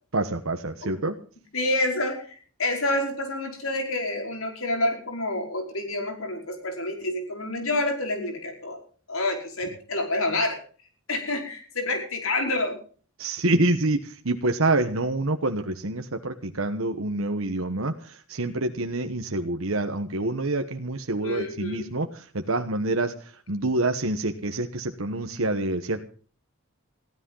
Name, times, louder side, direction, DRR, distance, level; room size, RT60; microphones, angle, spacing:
voice 1, 0.1-1.1 13.2-26.0, right 2 dB, 75° right, 7 dB, 1.3 m, -27 dB
voice 2, 1.5-8.8 9.1-10.6 11.1-12.8 21.2-21.9, left 2 dB, 80° left, 3 dB, 5.2 m, -28 dB
16.0 x 13.0 x 5.6 m, 0.43 s
head